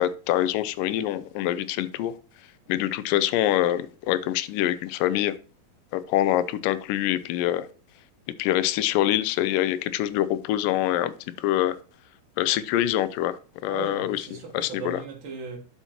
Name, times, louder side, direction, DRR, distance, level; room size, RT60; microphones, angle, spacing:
voice 1, 0.0-2.1 2.7-5.3 5.9-7.7 8.4-11.1 11.4-11.8 12.4-14.2 14.5-15.0, left 13 dB, 80° left, 2.0 m, -25 dB
voice 2, 13.6-15.6, right 5 dB, 65° right, 1.2 m, -37 dB
12.5 x 4.3 x 2.9 m
omnidirectional pair, 4.3 m